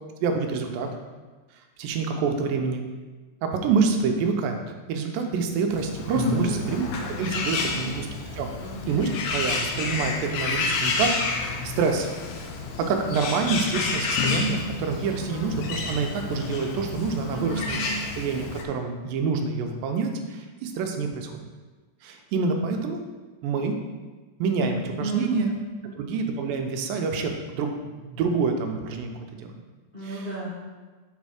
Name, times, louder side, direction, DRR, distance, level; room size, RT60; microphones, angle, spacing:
voice 1, 0.2-0.9 1.8-2.8 3.4-4.6 4.9-8.1 8.3-8.5 8.9-12.1 12.8-17.8 18.2-21.3 22.0-23.0 23.4-23.7 24.4-25.5 25.9-29.5 30.0-30.3, right 5 dB, 85° right, 4 dB, 2.4 m, -27 dB
Bird, 5.7-18.6, left 4 dB, 75° left, 1.9 m, -30 dB
voice 2, 6.3-6.8 7.2-7.9 8.6-8.9 17.3-18.0 25.0-26.0 29.9-30.5, right 2 dB, 25° left, -10 dB, 1.2 m, -34 dB
6.9 x 4.2 x 4.9 m, 1.3 s
omnidirectional pair, 3.9 m